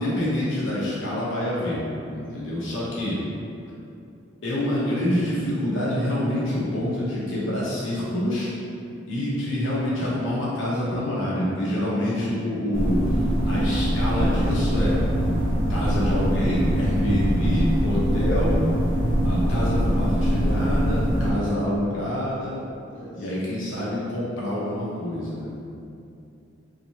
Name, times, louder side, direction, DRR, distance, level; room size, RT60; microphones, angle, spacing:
voice 1, 0.0-1.8 2.1-3.2 4.4-8.5 9.1-15.0 15.7-18.6 19.2-22.6 23.1-25.5, left 1 dB, 75° left, -8 dB, 1.0 m, -26 dB
voice 2, 2.3-3.2 12.0-12.4 22.9-23.4, equal, 45° left, -8 dB, 0.5 m, -43 dB
sound 1, 12.7-21.3, equal, 90° right, 0.6 m, -23 dB
3.3 x 2.8 x 2.9 m, 2.7 s
head